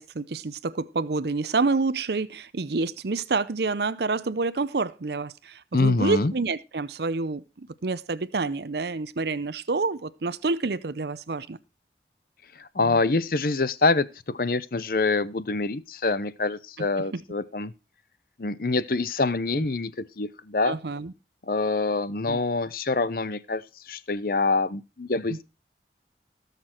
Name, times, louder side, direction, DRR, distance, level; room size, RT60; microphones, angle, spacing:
voice 1, 0.0-11.6 12.8-13.0 16.8-16.9 17.1-17.2 19.5-19.7 20.6-21.1 22.3-22.4 25.3-25.4, right 3 dB, 65° right, 0.6 m, -28 dB
voice 2, 5.7-6.3 12.6-17.7 18.4-19.9 20.2-20.8 21.4-25.4, left 3 dB, 50° left, 0.7 m, -25 dB
17.5 x 6.7 x 4.4 m
head